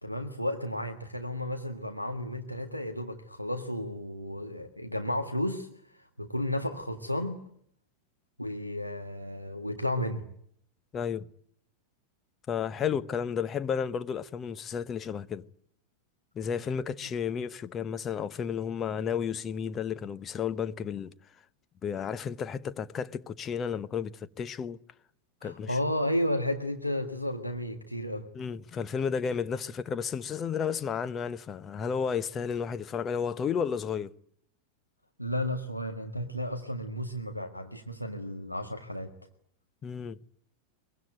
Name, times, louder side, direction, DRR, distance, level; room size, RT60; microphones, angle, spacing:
voice 1, 0.0-7.4 8.4-10.2 25.4-28.2 35.2-39.1, left 1 dB, 90° left, 1.8 m, -33 dB
voice 2, 10.9-11.3 12.5-15.4 16.3-21.1 21.8-24.8 25.4-25.8 28.3-34.1 39.8-40.2, left 7 dB, 25° left, 1.0 m, -32 dB
23.5 x 22.5 x 9.2 m
figure-of-eight pair, 90°, 0 cm